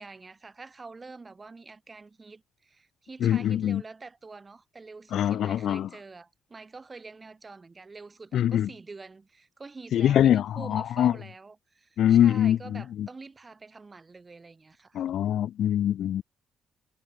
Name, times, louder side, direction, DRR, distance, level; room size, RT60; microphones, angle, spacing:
voice 1, 0.0-15.1, right 3 dB, 25° right, 4.6 m, -46 dB
voice 2, 3.2-3.8 5.1-5.9 8.3-8.7 9.9-11.1 12.0-13.1 14.9-16.2, left 11 dB, 70° left, 0.4 m, -23 dB
cardioid pair, 90°, 0 cm